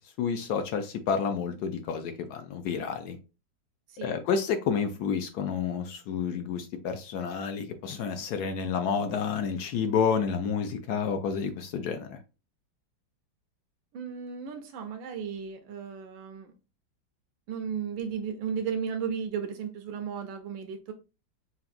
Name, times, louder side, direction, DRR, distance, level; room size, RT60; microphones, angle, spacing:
voice 1, 0.2-3.2 4.0-12.2, left 6 dB, 70° left, 1.0 m, -30 dB
voice 2, 13.9-16.5 17.5-20.9, right 7 dB, 85° right, 1.4 m, -34 dB
5.8 x 2.5 x 2.5 m
omnidirectional pair, 2.1 m